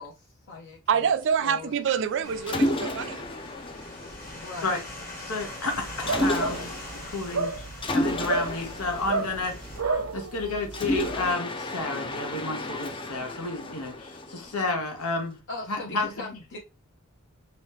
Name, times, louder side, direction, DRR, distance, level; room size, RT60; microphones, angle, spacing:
voice 1, 0.0-1.0 1.4-1.8 2.2-2.8 4.4-4.7 15.5-16.6, left 3 dB, 55° left, 0.7 m, -40 dB
voice 2, 0.9-3.3, right 7 dB, 55° right, 0.4 m, -26 dB
sound 1, 2.2-9.8, left 2 dB, 40° left, 1.5 m, -42 dB
Mechanisms, 2.5-4.9 6.1-6.9 7.8-10.1 10.7-14.9, left 1 dB, 25° left, 0.4 m, -32 dB
voice 3, 5.2-6.8 7.0-7.6 7.9-9.5 9.8-15.4 15.7-16.1, left 3 dB, 85° left, 1.2 m, -31 dB
sound 2, 5.6-11.3, right 3 dB, 75° right, 0.7 m, -32 dB
3.2 x 3.0 x 3.0 m
head